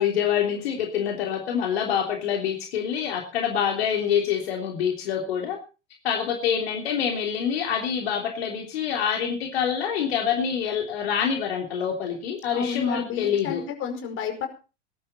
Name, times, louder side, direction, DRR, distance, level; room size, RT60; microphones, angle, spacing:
voice 1, 0.0-5.6 6.0-13.6, left 8 dB, 60° left, 2 dB, 3.4 m, -26 dB
voice 2, 12.5-14.5, left 6 dB, 35° left, 6 dB, 5.1 m, -31 dB
20.5 x 11.5 x 4.2 m, 0.33 s
figure-of-eight pair, 85°, 35 cm